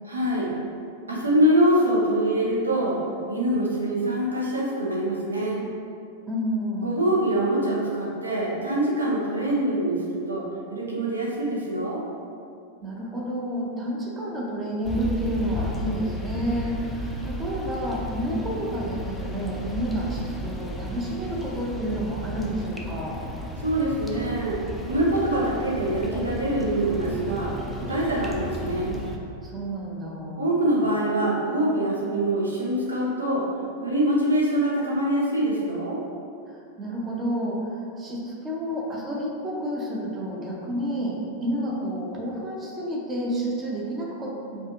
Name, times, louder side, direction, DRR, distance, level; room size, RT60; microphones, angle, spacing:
voice 1, 0.0-0.5 1.1-3.0 3.3-5.6 6.8-10.4 10.7-12.0 23.6-24.6 24.9-27.5 27.8-28.9 30.4-33.4 33.8-36.0, right 1 dB, 80° right, -5 dB, 0.8 m, -24 dB
voice 2, 6.3-7.0 12.8-23.2 29.4-30.6 36.8-44.7, equal, 20° right, -3 dB, 0.7 m, -30 dB
sound 1, 14.8-29.2, equal, 5° left, 0.4 m, -34 dB
4.9 x 2.5 x 2.5 m, 2.5 s
figure-of-eight pair, 90°, 0 cm